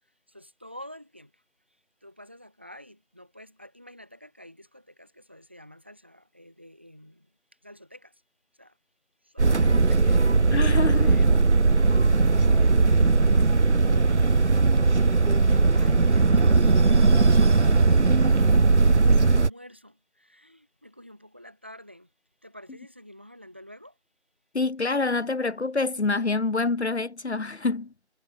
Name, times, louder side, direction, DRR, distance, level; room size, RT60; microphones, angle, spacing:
voice 1, 0.3-1.4 2.0-7.3 7.6-8.2 8.5-8.8 9.2-11.4 12.1-22.1 22.4-24.0, equal, 10° right, 5.5 m, -49 dB
sound 1, 9.4-19.5, right 3 dB, 80° right, 0.9 m, -19 dB
voice 2, 10.5-11.2 24.5-27.9, left 3 dB, 70° left, 0.8 m, -26 dB
figure-of-eight pair, 180°, 34 cm